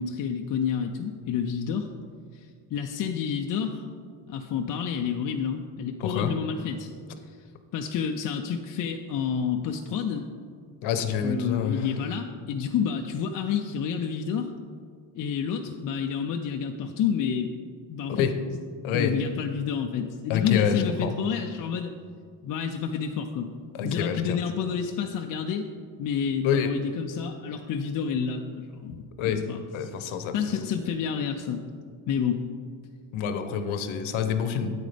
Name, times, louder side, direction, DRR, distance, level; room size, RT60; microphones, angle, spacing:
voice 1, 0.0-1.9 2.3-3.8 4.3-6.9 7.7-10.3 11.2-14.5 15.1-17.5 17.9-18.2 18.9-21.9 22.4-23.5 23.8-25.7 26.0-29.0 29.2-31.6 32.1-32.4, left 7 dB, 45° left, 3 dB, 0.4 m, -29 dB
voice 2, 6.0-6.3 10.8-11.9 18.1-18.4 18.8-19.1 20.3-21.1 23.8-24.4 26.4-26.7 29.2-29.4 29.7-30.6 33.1-34.7, left 7 dB, 80° left, 8 dB, 0.9 m, -27 dB
9.0 x 8.5 x 3.3 m, 2.1 s
cardioid pair, 135°, 47 cm